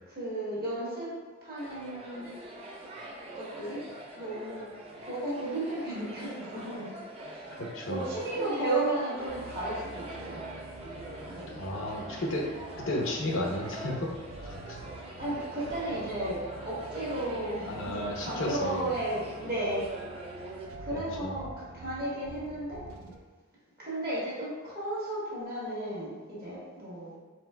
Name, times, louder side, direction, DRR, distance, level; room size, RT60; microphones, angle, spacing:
voice 1, 0.1-1.1 1.4-2.3 3.3-3.8 4.1-4.7 5.0-6.9 7.2-7.6 7.9-10.4 11.3-11.6 15.2-19.9 20.8-22.9 23.8-27.1, right 1 dB, 50° right, -7 dB, 1.5 m, -34 dB
sound 1, 1.6-20.6, right 1 dB, 30° right, 0.6 m, -44 dB
voice 2, 7.7-8.1 11.6-12.5 12.9-14.1 14.4-14.8 17.6-18.9 20.9-21.3, left 1 dB, 70° left, -1 dB, 0.7 m, -33 dB
sound 2, 9.2-23.2, right 2 dB, 90° right, 0.4 m, -47 dB
4.4 x 4.1 x 2.2 m, 1.3 s
head